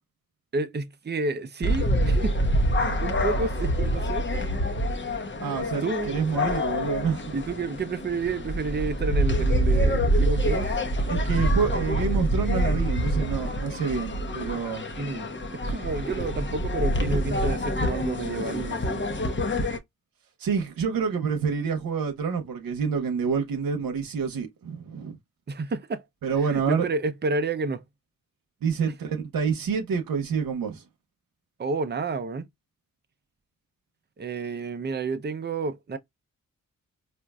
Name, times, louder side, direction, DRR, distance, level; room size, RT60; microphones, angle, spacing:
voice 1, 0.5-2.3 3.0-4.4 5.8-6.2 7.3-10.8 15.0-15.3 15.7-19.0 25.5-26.0 26.4-27.8 31.6-32.4 34.2-36.0, right 3 dB, 30° right, 0.6 m, -30 dB
sound 1, 1.6-19.8, equal, 35° left, 0.9 m, -26 dB
voice 2, 5.4-7.3 11.1-14.9 20.4-25.2 26.2-26.9 28.6-30.8, right 6 dB, 80° right, 0.8 m, -27 dB
4.4 x 2.4 x 2.3 m
cardioid pair, 45°, 34 cm